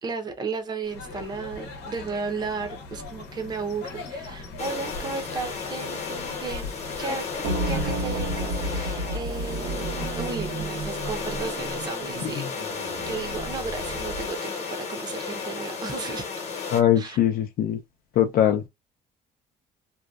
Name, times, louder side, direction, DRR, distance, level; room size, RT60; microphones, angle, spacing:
voice 1, 0.0-6.7 7.0-7.3 7.7-12.4 13.0-16.2 16.9-17.2, right 4 dB, 25° right, 0.6 m, -34 dB
sound 1, 0.8-10.7, left 3 dB, 85° left, 0.8 m, -40 dB
sound 2, 4.6-16.8, left 5 dB, 40° left, 0.9 m, -34 dB
sound 3, 7.4-14.4, right 2 dB, 75° right, 0.9 m, -32 dB
voice 2, 16.7-17.8 18.2-18.7, left 10 dB, 60° left, 0.4 m, -22 dB
2.7 x 2.2 x 2.3 m
cardioid pair, 110°, 17 cm